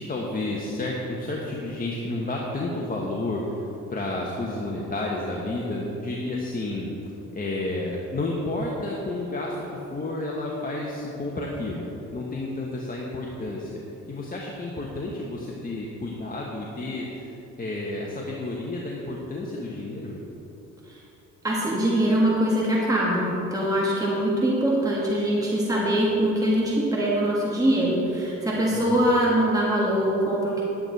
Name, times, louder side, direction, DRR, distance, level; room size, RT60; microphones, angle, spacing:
voice 1, 0.0-6.9 7.3-11.9 12.1-13.8 14.1-20.2 28.7-29.1, left 2 dB, 30° left, -3 dB, 1.2 m, -31 dB
voice 2, 21.4-30.6, right 1 dB, 10° right, -5 dB, 1.8 m, -23 dB
10.5 x 8.7 x 4.1 m, 2.9 s
cardioid pair, 90°, 30 cm